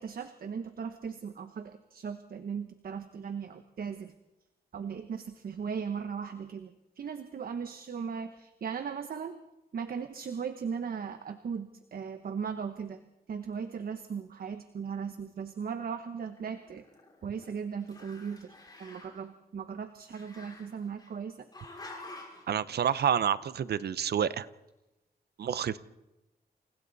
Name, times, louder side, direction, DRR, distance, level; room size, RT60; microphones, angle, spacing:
voice 1, 0.0-4.1 4.7-9.4 9.7-13.0 13.3-16.8 17.2-18.5 18.8-21.5, right 6 dB, 65° right, 8 dB, 1.1 m, -38 dB
Growling, 16.3-17.5 17.8-19.2 20.1-21.1 21.5-22.5, left 2 dB, 25° left, 5.9 m, -49 dB
voice 2, 22.5-24.5 25.4-25.8, right 8 dB, 90° right, 16 dB, 0.8 m, -28 dB
29.0 x 28.5 x 4.1 m, 1.0 s
wide cardioid pair, 125°, 16 cm